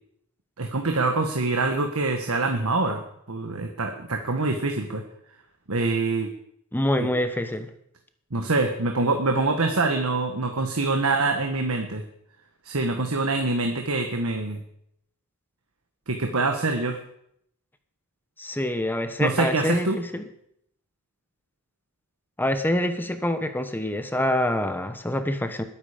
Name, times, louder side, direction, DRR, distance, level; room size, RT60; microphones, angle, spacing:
voice 1, 0.6-3.0 3.3-5.0 5.7-6.3 7.0-7.1 8.3-12.0 12.6-14.6 16.1-17.0 19.2-20.0, right 3 dB, 70° right, 4 dB, 1.4 m, -25 dB
voice 2, 6.7-7.7 18.4-20.3 22.4-25.6, left 1 dB, 10° left, 8 dB, 1.0 m, -26 dB
21.0 x 9.1 x 5.1 m, 0.73 s
head